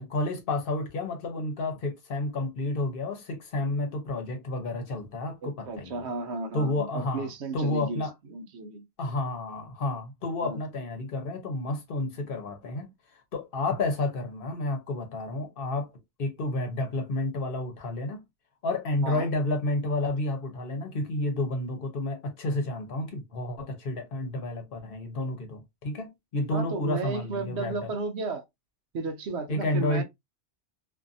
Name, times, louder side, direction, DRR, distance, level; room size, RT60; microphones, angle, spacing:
voice 1, 0.0-6.1 6.5-8.1 9.0-15.9 16.2-18.2 18.6-27.9 29.5-30.0, left 2 dB, 55° left, 1.0 m, -31 dB
voice 2, 5.7-8.0 8.3-8.8 10.4-10.6 19.0-19.3 26.5-28.4 28.9-30.0, right 3 dB, 70° right, 0.9 m, -33 dB
2.6 x 2.5 x 2.6 m
omnidirectional pair, 1.2 m